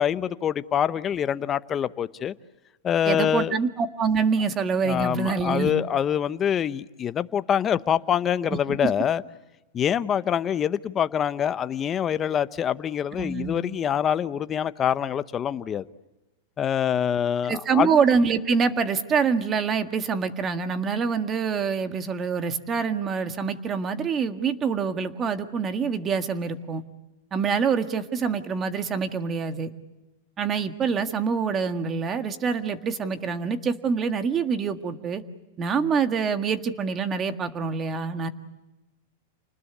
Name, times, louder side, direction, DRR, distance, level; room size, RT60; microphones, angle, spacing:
voice 1, 0.0-2.3 2.8-3.6 4.8-9.2 9.7-15.9 16.6-17.9, left 9 dB, 20° left, 0.8 m, -25 dB
voice 2, 3.0-5.7 8.8-8.9 13.2-13.6 17.5-26.8 27.3-29.7 30.4-35.2 35.6-38.3, right 5 dB, 20° right, 1.7 m, -25 dB
29.5 x 20.0 x 8.4 m
supercardioid pair, 155°, 0 cm